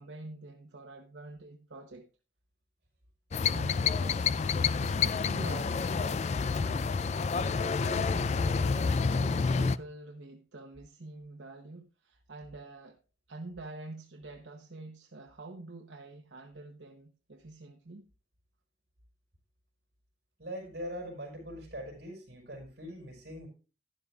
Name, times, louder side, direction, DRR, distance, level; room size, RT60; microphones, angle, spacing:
voice 1, 0.0-2.1 3.4-4.2 4.8-6.3 7.2-13.0 13.3-18.0, right 2 dB, 90° right, 0.9 m, -46 dB
sound 1, 3.3-9.8, left 5 dB, 40° left, 0.4 m, -28 dB
voice 2, 20.4-23.5, equal, 65° right, 4.9 m, -42 dB
12.0 x 11.0 x 2.4 m
head